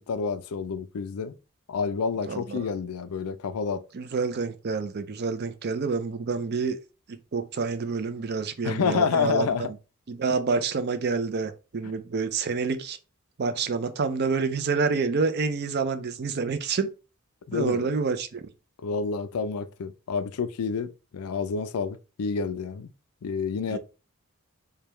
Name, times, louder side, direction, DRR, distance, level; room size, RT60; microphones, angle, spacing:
voice 1, 0.1-1.3 1.7-3.8 8.6-9.7 17.5-17.9 18.8-22.9 23.2-23.8, left 5 dB, 80° left, 0.4 m, -29 dB
voice 2, 2.2-2.7 3.9-6.8 7.1-9.5 10.1-13.0 13.4-16.9 17.5-18.4 23.7-23.8, right 4 dB, 50° right, 0.5 m, -28 dB
5.0 x 2.3 x 3.0 m
head